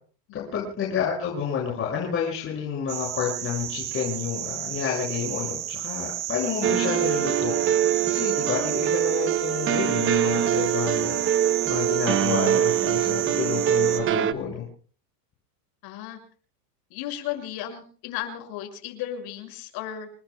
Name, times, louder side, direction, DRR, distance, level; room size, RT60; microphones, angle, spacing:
voice 1, 0.3-14.6, left 7 dB, 25° left, -3 dB, 6.6 m, -30 dB
sound 1, 2.9-14.0, right 13 dB, 45° right, 2.3 m, -32 dB
sound 2, 6.6-14.3, right 10 dB, 25° right, 0.8 m, -24 dB
voice 2, 15.8-16.2 16.9-20.1, left 11 dB, 50° left, 4 dB, 6.4 m, -35 dB
29.5 x 19.0 x 2.3 m, 0.42 s
supercardioid pair, 140°, 47 cm